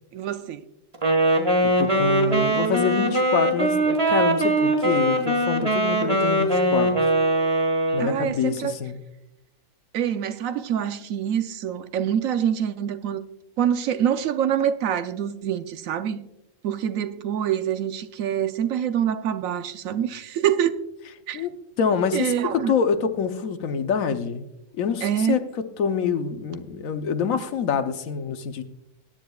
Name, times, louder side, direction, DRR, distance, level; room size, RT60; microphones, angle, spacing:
voice 1, 0.1-0.6 8.0-8.7 9.9-13.2 13.6-16.2 16.6-20.7 21.3-21.4 22.1-22.7 25.0-25.4, right 9 dB, 80° right, 1.1 m, -25 dB
Wind instrument woodwind instrument, 0.9-8.2, right 1 dB, 25° right, 1.5 m, -21 dB
voice 2, 1.8-6.9 7.9-9.0 21.3-21.5 21.8-24.4 24.8-25.4 25.8-28.6, left 6 dB, 85° left, 1.3 m, -26 dB
20.5 x 9.9 x 2.3 m
omnidirectional pair, 1.4 m